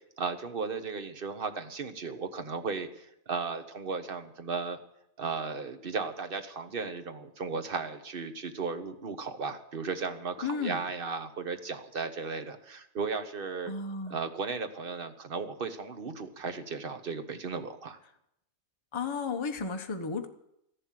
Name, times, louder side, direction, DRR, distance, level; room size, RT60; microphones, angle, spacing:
voice 1, 0.2-4.8 5.2-13.7 14.1-18.0, right 4 dB, 40° right, 8 dB, 1.3 m, -35 dB
voice 2, 10.4-10.8 13.7-14.2 18.9-20.3, left 4 dB, 20° left, 5 dB, 1.0 m, -33 dB
14.0 x 11.5 x 7.6 m, 0.79 s
omnidirectional pair, 1.5 m